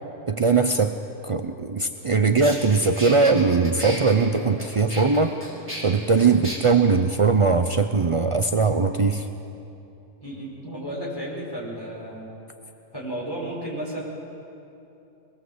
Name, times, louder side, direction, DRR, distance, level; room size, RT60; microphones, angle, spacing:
voice 1, 0.3-1.0 1.2-5.3 5.8-9.3, right 4 dB, 50° right, 7 dB, 0.3 m, -20 dB
sound 1, 2.0-2.1 2.4-6.6, equal, 10° right, 4.9 m, -35 dB
voice 2, 10.2-12.4 12.9-14.0, right 1 dB, 15° left, -5 dB, 6.4 m, -33 dB
23.5 x 21.0 x 7.9 m, 2.8 s
omnidirectional pair, 1.6 m